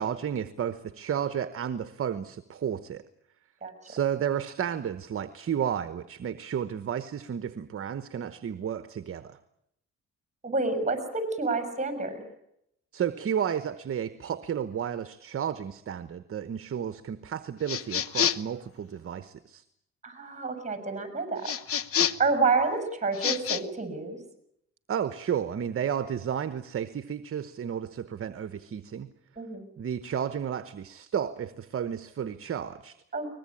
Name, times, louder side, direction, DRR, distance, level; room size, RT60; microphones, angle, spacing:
voice 1, 0.0-3.0 3.8-9.4 12.9-19.6 24.9-29.1 29.8-33.0, right 8 dB, 45° right, 12 dB, 1.1 m, -32 dB
voice 2, 10.4-12.3 20.0-21.5 22.2-24.2 29.4-29.7 33.1-33.3, right 3 dB, 25° right, 8 dB, 6.3 m, -28 dB
sound 1, 17.7-18.5 21.4-22.3 23.1-23.6, left 8 dB, 50° left, 1.0 m, -28 dB
22.5 x 20.5 x 8.6 m, 0.78 s
cardioid pair, 90°, 30 cm